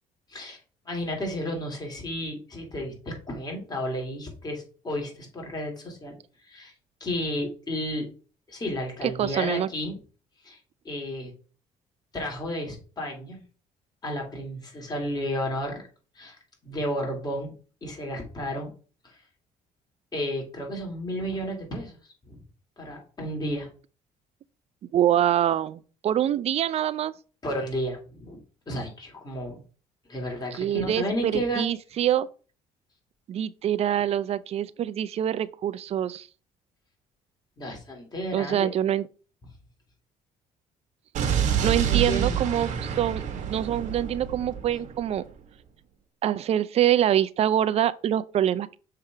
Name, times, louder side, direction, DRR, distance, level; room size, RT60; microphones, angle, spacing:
voice 1, 0.8-6.7 7.0-8.1 8.5-10.0 10.4-10.6 10.8-11.3 12.1-13.4 14.0-15.8 16.1-16.4 16.6-17.5 17.8-18.7 19.0-19.2 20.1-22.0 22.2-22.4 22.8-23.7 27.4-29.6 30.1-31.6 37.6-38.7 41.4-42.4, equal, 30° left, 2.7 m, -32 dB
voice 2, 9.0-9.7 24.9-27.1 30.5-32.3 33.3-36.3 38.3-39.1 41.2-41.3 41.6-45.2 46.2-48.8, right 11 dB, 50° right, 0.5 m, -25 dB
Explosion, 41.1-45.2, right 8 dB, 70° right, 1.3 m, -28 dB
6.6 x 3.4 x 4.6 m
cardioid pair, 105°, 13 cm